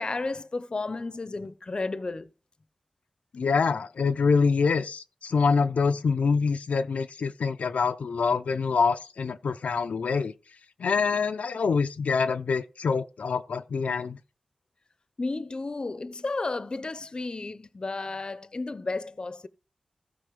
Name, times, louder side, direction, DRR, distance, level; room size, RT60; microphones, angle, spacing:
voice 1, 0.0-2.3 15.2-19.5, left 3 dB, 40° left, 0.7 m, -33 dB
voice 2, 3.3-10.3 10.8-14.2, left 5 dB, 90° left, 0.5 m, -25 dB
15.0 x 5.2 x 5.2 m
wide cardioid pair, 80°, 2 cm